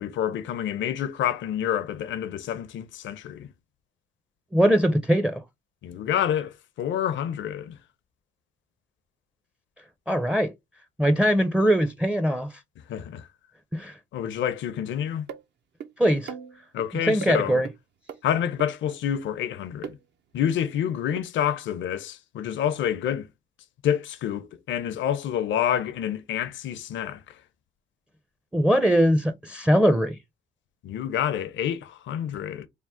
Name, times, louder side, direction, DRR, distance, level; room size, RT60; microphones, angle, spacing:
voice 1, 0.0-3.5 5.8-7.8 12.9-13.3 14.1-15.3 16.7-17.6 18.2-20.0 20.3-23.3 23.8-27.3 30.8-32.7, left 9 dB, 70° left, 0.6 m, -28 dB
voice 2, 4.5-5.4 10.1-10.5 11.0-12.5 13.7-13.9 16.0-16.3 17.1-17.7 28.5-30.2, equal, 5° right, 0.4 m, -21 dB
sound 1, 15.3-15.4 15.8-15.9 16.3-16.9 17.2-17.3 17.7-17.8 18.1-18.2 18.6-18.7 19.8-20.0 21.2-21.3, right 7 dB, 60° right, 0.6 m, -37 dB
3.5 x 2.0 x 4.2 m
cardioid pair, 90°, 20 cm